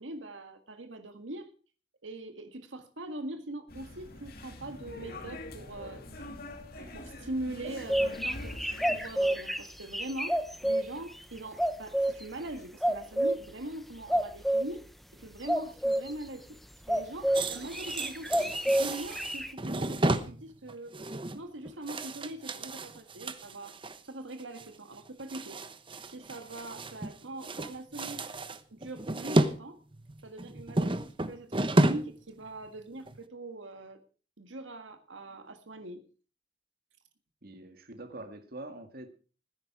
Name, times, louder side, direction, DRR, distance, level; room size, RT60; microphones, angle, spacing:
voice 1, 0.0-1.5 2.0-6.0 6.8-8.5 8.9-14.8 15.1-16.6 16.9-20.9 21.3-23.8 24.1-25.7 26.0-28.2 28.7-29.8 30.2-34.0 34.4-36.0, right 1 dB, 80° right, 7 dB, 1.8 m, -42 dB
sound 1, 3.7-9.1, left 2 dB, 50° left, 2.4 m, -44 dB
sound 2, 7.6-10.8 11.6-12.2 12.8-13.4 14.1-14.6 15.4-16.1 16.9-17.4 17.7-19.5, right 1 dB, ahead, 0.9 m, -28 dB
sound 3, 17.3-24.0 24.4-24.7 24.9-27.1 27.4-29.6 29.9-32.2 32.5-32.6 33.1-33.2, right 1 dB, 25° right, 1.1 m, -32 dB
voice 2, 37.4-39.1, right 2 dB, 50° right, 7 dB, 2.1 m, -45 dB
19.0 x 10.0 x 4.8 m, 0.39 s
head